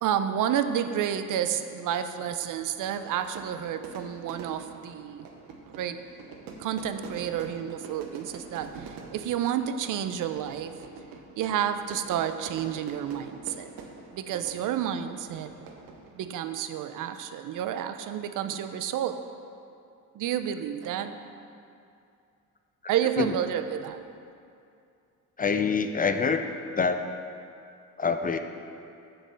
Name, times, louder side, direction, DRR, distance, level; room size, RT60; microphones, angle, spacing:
voice 1, 0.0-5.3 5.7-6.0 6.6-10.8 11.4-13.7 14.1-15.5 16.2-19.2 20.1-21.2 22.9-24.0, right 9 dB, 65° right, 9 dB, 0.6 m, -30 dB
Fire / Fireworks, 2.5-16.5, right 4 dB, 80° right, 1.0 m, -46 dB
voice 2, 25.4-26.5 26.8-27.1 28.0-28.4, left 5 dB, 25° left, 7 dB, 0.4 m, -25 dB
7.2 x 5.3 x 6.8 m, 2.5 s
cardioid pair, 90°, 34 cm